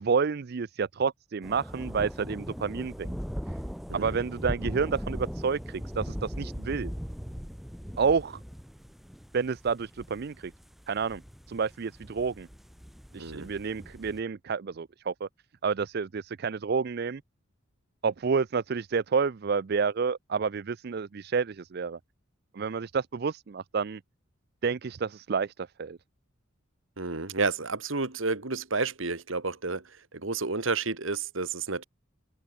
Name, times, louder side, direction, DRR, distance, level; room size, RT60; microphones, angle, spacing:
voice 1, 0.0-3.2 3.9-6.9 8.0-8.4 9.3-10.5 10.9-11.2 11.5-12.5 13.1-15.3 15.6-17.2 18.0-22.0 22.5-24.0 24.6-26.0, right 5 dB, 50° right, 0.4 m, -29 dB
sound 1, 1.4-14.2, equal, ahead, 2.0 m, -39 dB
voice 2, 27.0-31.8, right 3 dB, 70° right, 1.9 m, -31 dB
open air
head